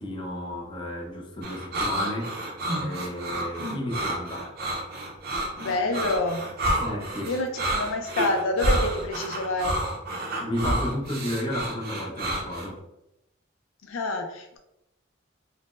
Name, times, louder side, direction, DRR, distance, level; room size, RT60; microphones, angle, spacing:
voice 1, 0.0-2.3 2.8-4.5 6.8-7.4 10.4-12.8, left 1 dB, 25° left, 0.6 m, -32 dB
sound 1, 1.4-12.7, right 1 dB, 50° right, 0.5 m, -29 dB
voice 2, 5.6-6.5 7.3-9.8 13.8-14.6, left 2 dB, 75° left, 0.4 m, -27 dB
3.9 x 2.0 x 2.4 m
head